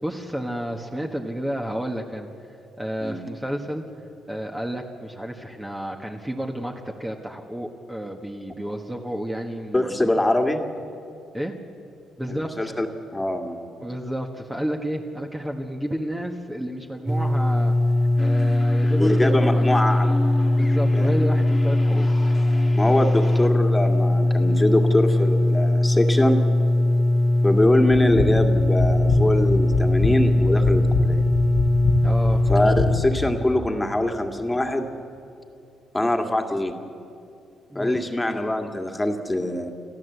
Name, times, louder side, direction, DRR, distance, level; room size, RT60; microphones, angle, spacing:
voice 1, 0.0-2.5 2.8-3.8 4.3-10.1 11.3-11.5 12.2-12.7 13.8-17.7 18.2-19.6 20.5-22.1 32.0-32.4 37.7-38.0, equal, 10° right, 1 dB, 1.5 m, -31 dB
voice 2, 9.7-10.6 12.3-12.9 13.1-13.7 19.0-20.2 20.9-21.2 22.7-26.4 27.4-31.2 32.5-34.9 35.9-36.8 37.8-39.7, left 1 dB, 10° left, 4 dB, 2.1 m, -23 dB
sound 1, 17.1-33.0, left 1 dB, 25° right, 1.4 m, -20 dB
sound 2, 18.2-23.5, left 2 dB, 30° left, 1.9 m, -34 dB
sound 3, 28.0-33.2, left 4 dB, 75° left, 1.8 m, -27 dB
27.0 x 14.5 x 8.1 m, 2.6 s
cardioid pair, 90°, 0 cm